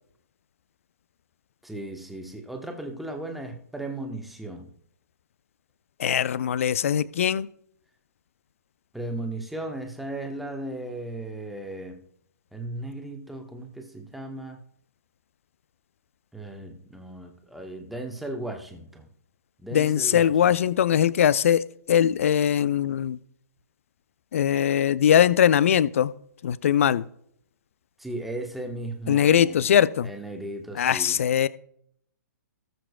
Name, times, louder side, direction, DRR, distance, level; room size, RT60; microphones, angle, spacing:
voice 1, 1.6-4.7 8.9-12.0 12.5-14.6 16.3-19.1 19.6-20.4 28.0-29.7 30.0-31.2, right 1 dB, ahead, 1.2 m, -36 dB
voice 2, 6.0-7.5 19.7-23.2 24.3-26.1 26.4-27.0 29.1-30.1 30.8-31.5, left 9 dB, 45° left, 0.5 m, -21 dB
18.5 x 7.8 x 2.4 m
figure-of-eight pair, 120°, 10 cm